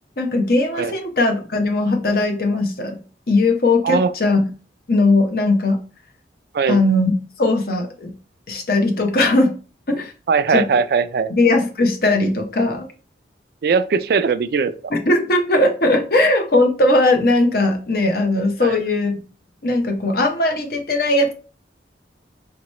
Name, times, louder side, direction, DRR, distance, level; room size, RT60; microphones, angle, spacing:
voice 1, 0.2-3.0 3.3-4.4 4.9-5.8 6.7-7.1 7.4-8.1 8.5-9.5 9.9-10.1 10.5-10.6 11.3-12.9 14.9-19.2 19.6-21.3, left 2 dB, 55° left, 0.7 m, -18 dB
voice 2, 10.3-11.3 13.6-14.7 18.6-18.7, right 5 dB, 60° right, 0.3 m, -19 dB
4.5 x 2.9 x 3.0 m
head